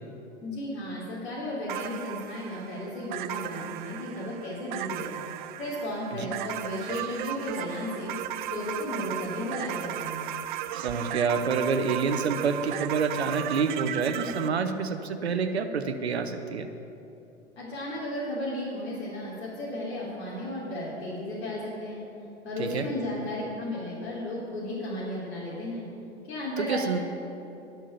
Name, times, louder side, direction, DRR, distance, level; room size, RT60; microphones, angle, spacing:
voice 1, 0.4-5.1 5.6-8.1 8.5-10.2 17.6-22.0 22.4-25.8 26.3-26.9, left 1 dB, 75° left, -8 dB, 3.5 m, -34 dB
sound 1, 1.7-14.5, right 13 dB, 45° right, 0.5 m, -36 dB
voice 2, 10.7-16.7 22.6-22.9 26.6-27.0, right 5 dB, 75° right, 8 dB, 1.1 m, -28 dB
12.0 x 7.5 x 8.2 m, 2.8 s
figure-of-eight pair, 90°, 33 cm